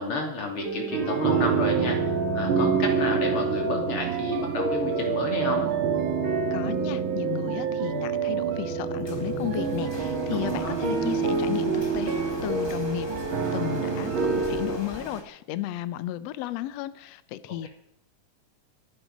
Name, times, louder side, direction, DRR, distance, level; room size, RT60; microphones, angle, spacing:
voice 1, 0.0-2.0 2.3-5.7 10.3-10.8, left 2 dB, 40° left, 2 dB, 3.5 m, -30 dB
sound 1, 0.6-12.6 13.1-14.5, right 6 dB, 70° right, 2.8 m, -31 dB
sound 2, 0.9-14.8, right 5 dB, 45° right, 2.0 m, -29 dB
voice 2, 6.5-13.1 13.5-17.7, left 13 dB, 85° left, 14 dB, 1.4 m, -34 dB
Printer, 9.0-15.2, left 1 dB, 20° left, 0.7 m, -39 dB
23.0 x 10.5 x 5.1 m, 0.78 s
omnidirectional pair, 3.8 m